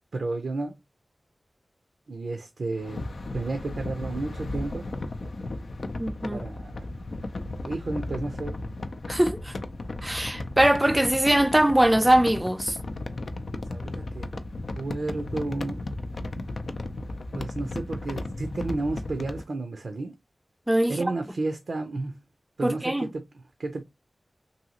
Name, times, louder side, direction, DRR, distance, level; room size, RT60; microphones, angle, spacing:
voice 1, 0.1-0.8 2.1-3.1 3.3-4.9 6.3-6.8 7.6-8.6 13.7-14.4 14.7-15.8 17.3-20.1 20.9-22.2 22.6-23.8, right 2 dB, 80° right, 0.5 m, -32 dB
sound 1, 2.8-19.4, left 2 dB, 75° left, 0.4 m, -35 dB
voice 2, 6.0-6.4 9.1-9.5 10.0-12.8 20.7-21.0 22.6-23.1, right 1 dB, 15° right, 0.4 m, -22 dB
2.7 x 2.7 x 2.8 m
cardioid pair, 50°, 0 cm